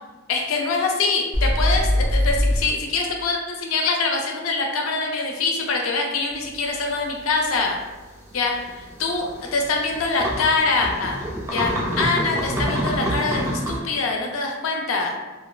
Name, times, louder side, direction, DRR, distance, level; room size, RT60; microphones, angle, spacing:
voice 1, 0.3-7.8 8.3-11.2 11.5-15.1, left 3 dB, 75° left, 1 dB, 0.4 m, -24 dB
sound 1, 1.3-2.6, left 1 dB, 90° right, 0.7 m, -20 dB
sound 2, 6.5-6.6 7.9-8.0 8.3-13.8, equal, 15° right, 0.3 m, -27 dB
2.7 x 2.2 x 2.3 m, 1.2 s
head